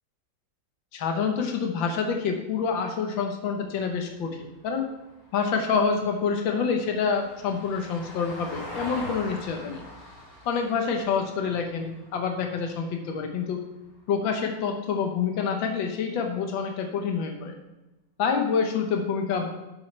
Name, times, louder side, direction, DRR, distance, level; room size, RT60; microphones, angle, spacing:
voice 1, 0.9-4.9 5.3-9.8 10.5-13.7 14.1-17.6 18.2-19.5, left 5 dB, 85° left, 4 dB, 1.8 m, -27 dB
Vehicle, 3.5-13.9 16.2-16.3, left 1 dB, 50° left, 3.0 m, -44 dB
11.0 x 8.5 x 3.3 m, 1.0 s
omnidirectional pair, 2.1 m